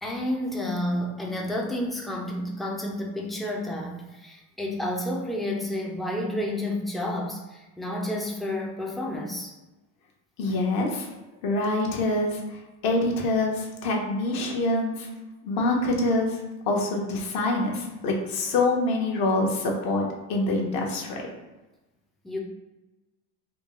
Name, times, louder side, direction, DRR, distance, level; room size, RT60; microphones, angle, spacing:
voice 1, 0.0-9.5 22.2-22.4, left 1 dB, ahead, -1 dB, 0.4 m, -30 dB
voice 2, 10.4-11.1 11.4-15.1 15.4-16.4 16.6-21.3, left 2 dB, 60° left, 0 dB, 0.9 m, -25 dB
3.6 x 2.2 x 2.9 m, 1.1 s
supercardioid pair, 115°, 40 cm